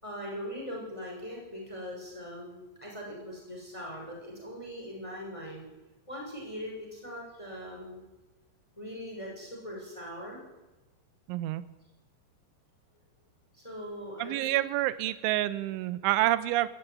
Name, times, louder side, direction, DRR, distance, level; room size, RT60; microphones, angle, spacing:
voice 1, 0.0-5.7 6.1-8.0 8.8-10.4 13.5-14.6, equal, 5° left, -1 dB, 6.3 m, -41 dB
voice 2, 11.3-11.6 14.2-16.7, right 16 dB, 80° right, 14 dB, 3.2 m, -28 dB
20.5 x 15.0 x 9.9 m, 1.1 s
omnidirectional pair, 5.7 m